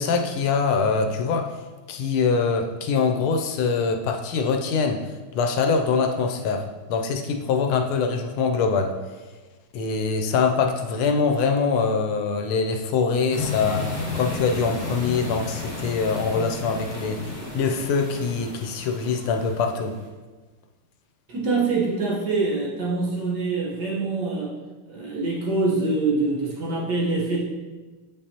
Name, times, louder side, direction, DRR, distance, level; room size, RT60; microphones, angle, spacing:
voice 1, 0.0-1.5 1.9-8.9 9.7-20.0, left 5 dB, 80° left, 4 dB, 1.4 m, -24 dB
sound 1, 13.3-20.1, left 3 dB, 30° left, 1.5 m, -33 dB
voice 2, 21.3-24.5 24.9-27.4, right 3 dB, 55° right, -4 dB, 1.6 m, -25 dB
8.2 x 5.4 x 2.8 m, 1.3 s
omnidirectional pair, 2.4 m